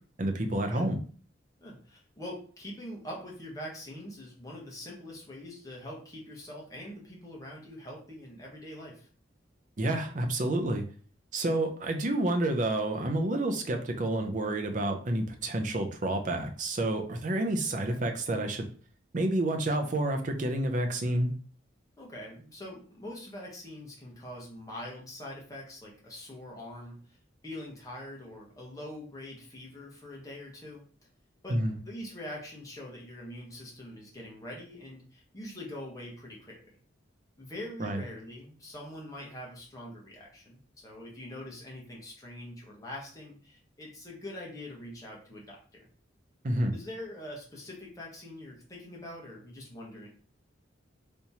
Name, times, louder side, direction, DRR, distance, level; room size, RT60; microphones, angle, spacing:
voice 1, 0.2-1.0 9.8-10.8 11.3-18.7 19.1-21.3 31.5-31.8 37.8-38.0 46.4-46.7, right 1 dB, 40° right, 4 dB, 0.5 m, -29 dB
voice 2, 1.6-9.1 22.0-27.2 27.4-30.8 31.4-36.8 37.4-45.9 46.7-50.1, left 1 dB, 20° left, -2 dB, 1.0 m, -44 dB
3.5 x 2.9 x 2.7 m, 0.43 s
head